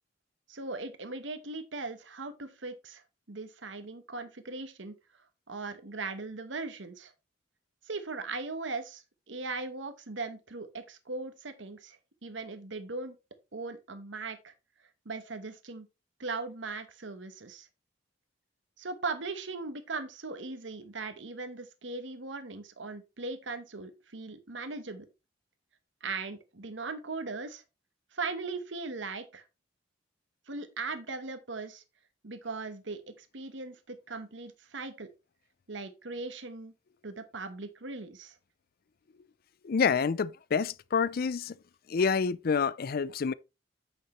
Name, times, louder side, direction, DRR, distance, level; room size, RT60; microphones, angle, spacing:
voice 1, 0.5-4.9 5.5-7.1 7.9-12.0 12.2-13.1 13.5-14.5 15.0-15.9 16.2-17.7 18.8-25.1 26.0-27.6 28.1-29.4 30.5-31.8 32.2-35.1 35.7-36.7 37.0-38.4, right 3 dB, 75° right, 1.1 m, -39 dB
voice 2, 39.6-41.5 41.9-43.3, left 5 dB, 50° left, 0.4 m, -28 dB
8.8 x 6.5 x 3.1 m
head